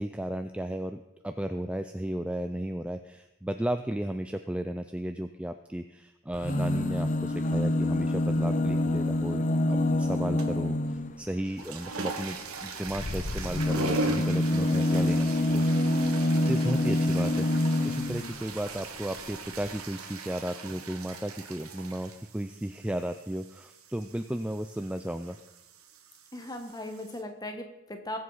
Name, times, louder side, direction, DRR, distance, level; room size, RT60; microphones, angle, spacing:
voice 1, 0.0-15.6 16.5-25.4, right 1 dB, 5° right, 8 dB, 0.3 m, -34 dB
sound 1, 6.3-11.2 12.9-18.3 19.3-19.4 19.6-19.7, left 1 dB, 35° left, 0.6 m, -26 dB
sound 2, 10.4-10.7 11.4-27.2, right 3 dB, 85° right, 1.5 m, -39 dB
voice 2, 26.3-28.2, left 1 dB, 20° left, 5 dB, 1.2 m, -38 dB
20.5 x 7.8 x 4.0 m, 1.0 s
head